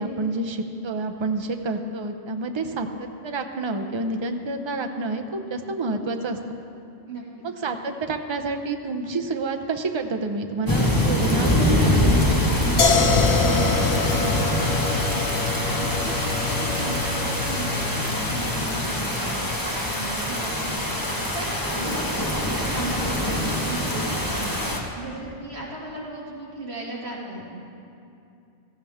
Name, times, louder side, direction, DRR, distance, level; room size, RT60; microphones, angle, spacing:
voice 1, 0.0-6.6 7.4-12.1 21.7-22.0, right 3 dB, 30° right, 5 dB, 0.6 m, -29 dB
sound 1, 10.7-24.8, left 1 dB, 15° left, 1.3 m, -24 dB
voice 2, 12.5-19.3 19.6-22.0 22.3-27.4, right 2 dB, 55° right, -5 dB, 2.6 m, -36 dB
sound 2, 12.8-18.6, left 5 dB, 65° left, 1.1 m, -26 dB
16.5 x 14.0 x 3.5 m, 2.6 s
omnidirectional pair, 1.2 m